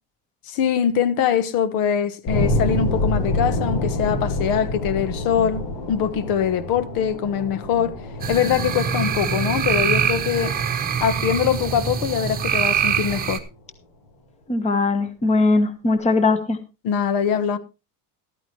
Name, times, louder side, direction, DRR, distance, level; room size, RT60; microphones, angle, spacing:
voice 1, 0.5-5.6 5.9-8.0 8.3-10.5 11.0-13.4 16.8-17.6, left 8 dB, 60° left, 1.3 m, -22 dB
sound 1, 2.3-13.0, left 1 dB, 80° left, 7.6 m, -28 dB
sound 2, 8.2-13.4, right 7 dB, 20° right, 1.1 m, -24 dB
voice 2, 14.5-16.6, left 3 dB, 15° left, 1.3 m, -20 dB
14.0 x 13.0 x 3.2 m
cardioid pair, 175°, 40 cm